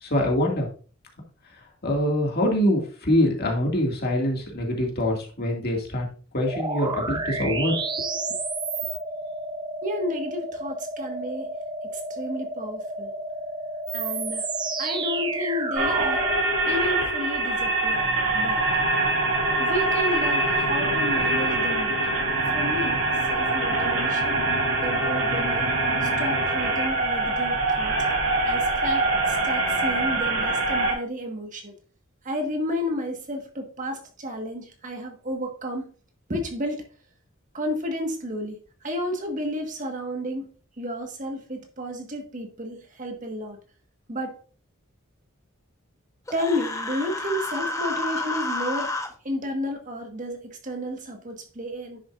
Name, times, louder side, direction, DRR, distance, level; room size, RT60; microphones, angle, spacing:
voice 1, 0.0-0.7 1.8-6.1 6.3-7.7, left 1 dB, 50° left, 2.2 m, -24 dB
sound 1, 6.5-16.4, right 2 dB, 20° right, 0.9 m, -31 dB
voice 2, 9.8-11.5 11.9-13.1 13.9-14.5 14.8-16.3 16.6-18.0 18.3-18.6 19.6-22.1 22.5-23.0 23.3-24.4 24.8-25.7 26.0-27.9 28.4-31.7 32.2-35.9 36.3-36.8 37.5-43.6 44.1-44.4 46.3-48.9 49.2-52.0, equal, 40° right, 1.6 m, -32 dB
sound 2, 15.7-30.9, right 2 dB, 70° right, 3.8 m, -24 dB
Human voice, 46.3-49.1, left 2 dB, 15° left, 1.1 m, -30 dB
10.0 x 7.0 x 2.5 m
head